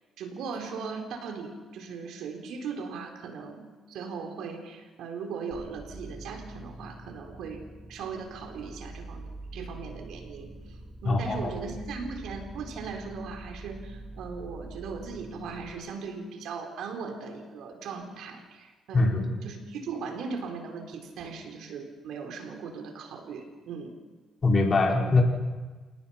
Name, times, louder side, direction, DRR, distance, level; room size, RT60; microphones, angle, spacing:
voice 1, 0.2-10.5 11.0-24.0, right 5 dB, 80° right, 3 dB, 4.3 m, -38 dB
sound 1, 5.5-15.7, right 2 dB, 5° right, 7.4 m, -44 dB
voice 2, 11.0-11.5 18.9-19.2 24.4-25.2, left 3 dB, 35° left, 0 dB, 4.7 m, -22 dB
29.0 x 19.0 x 5.9 m, 1.3 s
cardioid pair, 90°, 0 cm